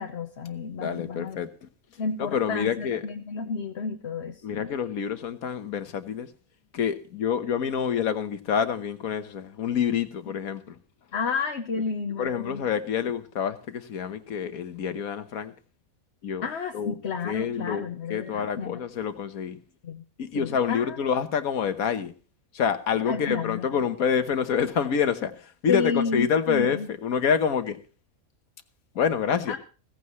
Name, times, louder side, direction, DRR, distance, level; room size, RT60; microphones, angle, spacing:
voice 1, 0.0-1.4 2.0-4.7 11.1-12.6 16.4-18.8 19.8-20.0 20.3-21.0 23.1-23.8 25.7-26.9 29.5-29.6, left 5 dB, 55° left, 1.2 m, -31 dB
voice 2, 0.8-1.7 2.2-3.0 4.4-6.3 6.7-10.8 12.2-15.5 16.2-16.4 16.7-17.0 17.2-19.6 20.2-22.1 22.5-27.8 28.9-29.6, left 7 dB, 85° left, 1.5 m, -27 dB
16.5 x 15.0 x 3.1 m
omnidirectional pair, 1.5 m